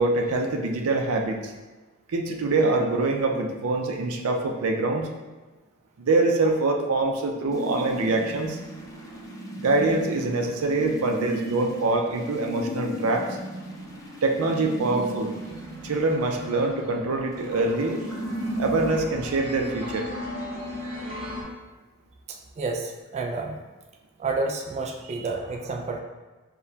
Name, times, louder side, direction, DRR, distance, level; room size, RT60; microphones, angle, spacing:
voice 1, 0.0-1.5 2.1-5.1 6.0-8.6 9.6-13.3 14.2-15.3 15.8-18.0 18.6-20.1 25.1-25.2, right 2 dB, 90° right, 3 dB, 0.5 m, -24 dB
sound 1, 7.5-19.0, equal, 15° left, 0.6 m, -36 dB
sound 2, 14.7-21.4, left 1 dB, 75° right, 1.2 m, -38 dB
voice 2, 22.3-23.6 24.2-26.0, right 3 dB, 30° right, 1 dB, 0.3 m, -30 dB
6.7 x 2.2 x 2.8 m, 1.2 s
head